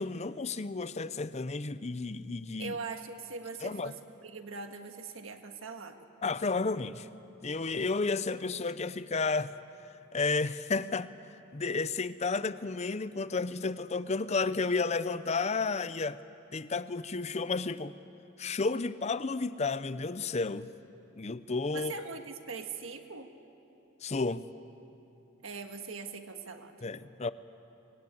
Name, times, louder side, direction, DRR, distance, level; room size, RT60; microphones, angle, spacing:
voice 1, 0.0-2.8 3.6-3.9 6.2-7.1 7.4-9.5 10.1-11.1 11.5-16.2 16.5-17.9 18.4-20.7 21.2-21.9 24.0-24.5 26.8-27.3, left 4 dB, 30° left, 0.6 m, -32 dB
voice 2, 2.6-4.0 4.2-6.0 21.7-23.3 25.4-26.7, right 4 dB, 65° right, 1.6 m, -41 dB
23.5 x 20.5 x 9.5 m
head